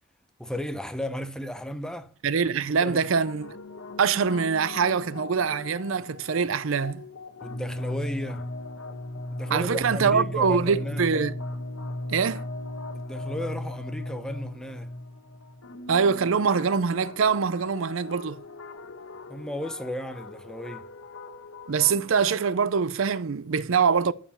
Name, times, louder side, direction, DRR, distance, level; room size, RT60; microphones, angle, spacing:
voice 1, 0.4-2.1 2.6-3.0 7.4-8.5 9.3-11.1 12.9-14.9 19.3-20.9, equal, 5° left, 0.8 m, -35 dB
voice 2, 2.2-3.5 4.0-7.0 9.5-11.3 12.1-12.4 15.9-18.4 21.7-24.1, right 6 dB, 65° right, 0.5 m, -24 dB
sound 1, 2.8-22.5, left 2 dB, 75° left, 1.2 m, -37 dB
14.0 x 5.0 x 7.2 m
head